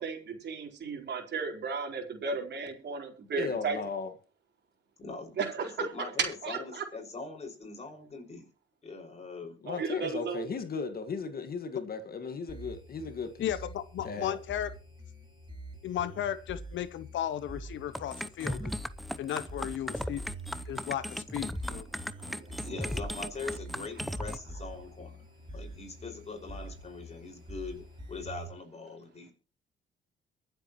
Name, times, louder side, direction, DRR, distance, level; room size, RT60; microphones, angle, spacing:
voice 1, 0.0-3.8 5.4-5.7 6.2-6.8 9.7-10.5 22.2-22.5, right 5 dB, 60° right, 4.1 m, -34 dB
voice 2, 3.4-4.1 9.6-13.5 14.0-14.4, left 5 dB, 50° left, 1.8 m, -36 dB
voice 3, 5.0-8.5 8.8-9.6 22.6-29.3, left 4 dB, 35° left, 5.6 m, -42 dB
sound 1, 12.5-28.5, right 1 dB, 25° right, 5.1 m, -46 dB
voice 4, 13.4-14.7 15.8-18.7 19.2-20.3 20.7-21.8, left 11 dB, 70° left, 0.8 m, -35 dB
sound 2, 17.9-24.4, equal, ahead, 0.8 m, -36 dB
24.0 x 8.1 x 3.1 m
cardioid pair, 90°, 20 cm